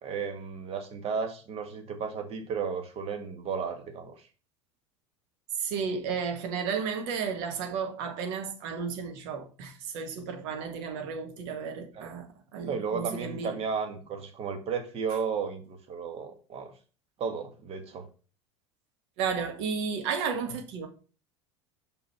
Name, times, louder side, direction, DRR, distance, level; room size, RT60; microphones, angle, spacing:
voice 1, 0.0-4.2 12.0-12.1 12.6-16.7 17.2-18.1, right 6 dB, 45° right, 1.8 m, -34 dB
voice 2, 5.6-12.3 12.5-13.6 19.2-20.9, right 6 dB, 60° right, 1.8 m, -33 dB
5.4 x 5.4 x 5.5 m
hypercardioid pair, 75°, 15 cm